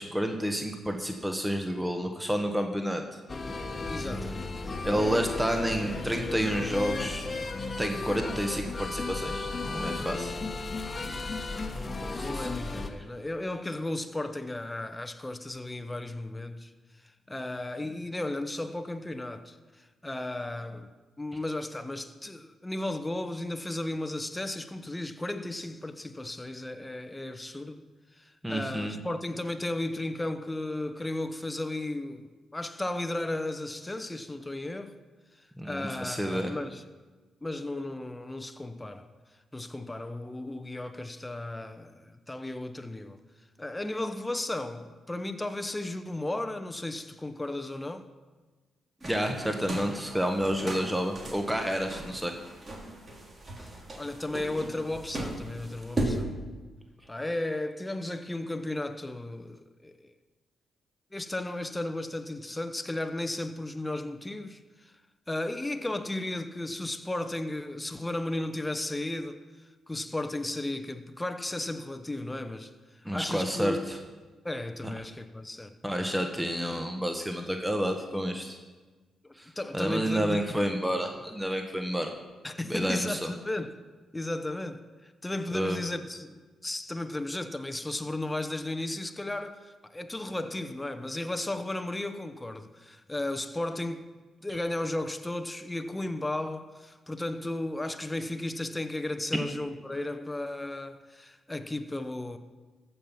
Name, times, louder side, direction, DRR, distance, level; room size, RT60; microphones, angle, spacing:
voice 1, 0.0-3.0 4.8-7.2 7.8-10.3 12.1-12.5 28.4-29.0 35.6-36.5 49.0-52.3 73.0-74.0 75.8-78.6 79.4-79.5 79.7-82.1 82.7-83.3 85.5-85.8, equal, 5° right, 1.3 m, -30 dB
sound 1, 3.3-12.9, left 3 dB, 35° left, 1.2 m, -34 dB
voice 2, 3.7-4.5 4.8-5.3 11.6-16.7 17.3-20.9 21.2-27.8 28.2-34.9 35.6-36.8 37.4-39.1 39.5-43.2 43.6-48.0 53.6-56.3 57.1-60.1 61.1-64.9 65.3-69.4 69.9-72.7 73.1-73.9 74.4-75.7 79.2-80.6 82.4-83.8 84.1-94.1 94.4-102.4, left 1 dB, 15° left, 0.9 m, -35 dB
sound 2, 49.0-56.2, right 1 dB, 40° right, 3.0 m, -37 dB
15.0 x 5.5 x 5.9 m
hypercardioid pair, 45°, 0 cm